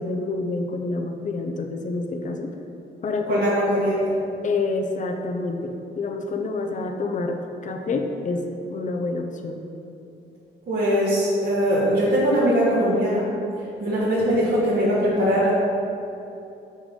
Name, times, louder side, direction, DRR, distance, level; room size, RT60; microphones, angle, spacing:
voice 1, 0.0-2.6 3.0-3.5 4.4-9.6, left 3 dB, 40° left, 4 dB, 0.8 m, -28 dB
voice 2, 3.3-4.0 10.7-13.2 13.8-15.5, equal, 50° right, -9 dB, 1.9 m, -21 dB
6.3 x 6.0 x 5.3 m, 2.8 s
cardioid pair, 90°, 20 cm